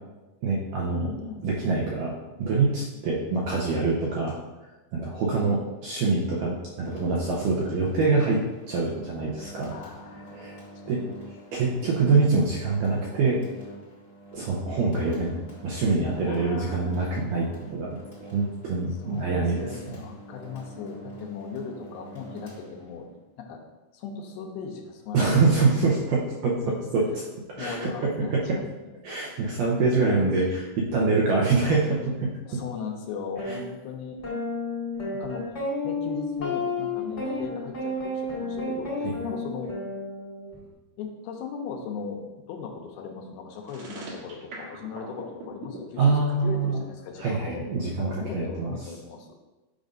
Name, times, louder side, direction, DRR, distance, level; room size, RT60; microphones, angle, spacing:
voice 1, 0.4-1.1 1.4-4.3 4.9-8.4 8.7-9.7 10.3-10.6 10.9-11.0 11.5-13.4 14.3-19.8 25.1-27.0 27.6-28.6 29.0-32.3 33.5-33.6 46.0-46.8 47.2-48.7, right 3 dB, 80° right, -4 dB, 2.0 m, -25 dB
voice 2, 1.0-1.4 5.4-5.6 9.7-10.6 10.9-11.0 16.2-16.9 19.0-23.1 23.4-23.6 23.9-25.3 26.7-26.8 27.6-28.6 30.0-30.3 32.5-34.2 35.1-39.7 41.0-42.2 42.5-47.7 48.0-49.4, left 5 dB, 80° left, 1 dB, 2.6 m, -38 dB
sound 1, 6.7-23.2, right 2 dB, 65° left, 0.5 m, -45 dB
sound 2, 33.4-33.5 34.2-40.6, left 2 dB, 35° left, 1.1 m, -31 dB
sound 3, 43.6-45.8, right 4 dB, 65° right, 2.0 m, -40 dB
8.9 x 5.3 x 2.5 m, 1.1 s
omnidirectional pair, 4.6 m